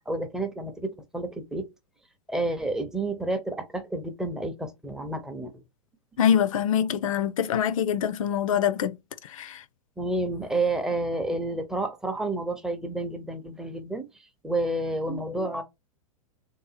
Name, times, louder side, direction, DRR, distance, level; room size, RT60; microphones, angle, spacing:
voice 1, 0.1-1.7 2.3-5.5 10.0-14.1 14.4-15.6, right 2 dB, 5° right, 0.6 m, -30 dB
voice 2, 6.2-9.0 9.3-9.6, left 9 dB, 60° left, 0.5 m, -24 dB
3.4 x 2.7 x 4.2 m
figure-of-eight pair, 105°, 19 cm